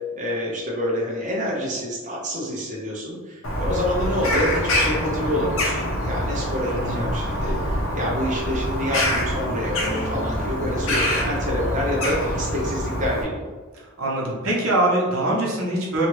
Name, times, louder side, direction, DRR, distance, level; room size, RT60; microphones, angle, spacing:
voice 1, 0.1-13.5, equal, 35° right, -4 dB, 0.6 m, -27 dB
Bird vocalization bird call bird song, 3.4-13.2, left 1 dB, 70° left, 0.6 m, -25 dB
voice 2, 6.7-7.0 13.7-16.1, right 1 dB, 85° right, -4 dB, 0.8 m, -23 dB
sound 1, 9.8-11.3, equal, 85° left, 1.1 m, -38 dB
2.8 x 2.3 x 3.0 m, 1.3 s
head